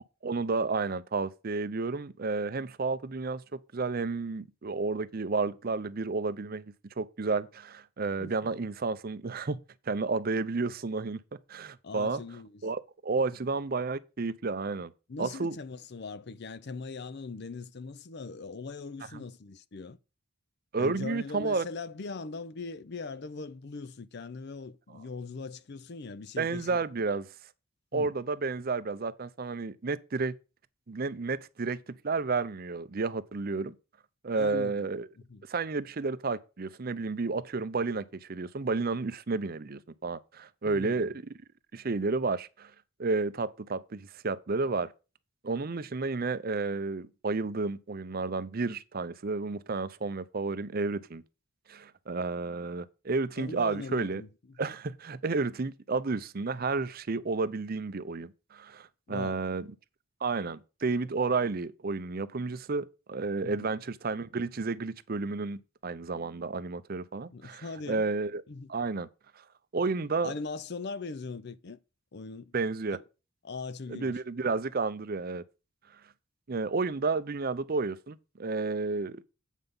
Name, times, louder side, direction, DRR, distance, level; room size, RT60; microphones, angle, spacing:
voice 1, 0.2-3.4 3.7-6.6 7.0-9.6 9.9-11.2 11.5-12.2 12.6-14.9 15.2-15.6 19.1-19.2 20.7-21.6 26.4-27.3 27.9-30.4 30.9-33.7 34.2-35.1 35.5-41.3 41.7-42.7 43.0-44.9 45.4-51.2 51.7-54.2 54.6-59.7 60.2-68.4 68.7-69.1 69.7-70.3 72.5-73.0 73.9-75.4 76.5-79.2, right 4 dB, 40° right, 0.5 m, -31 dB
voice 2, 11.8-12.6 15.1-20.0 20.8-26.8 27.9-28.1 34.4-34.9 35.3-35.4 40.7-41.1 53.4-54.3 59.1-59.4 63.4-63.7 67.3-68.1 68.5-68.7 70.2-71.8 72.1-72.5 72.9-73.0 73.4-74.1, left 4 dB, 50° left, 0.5 m, -40 dB
8.2 x 5.8 x 5.3 m
head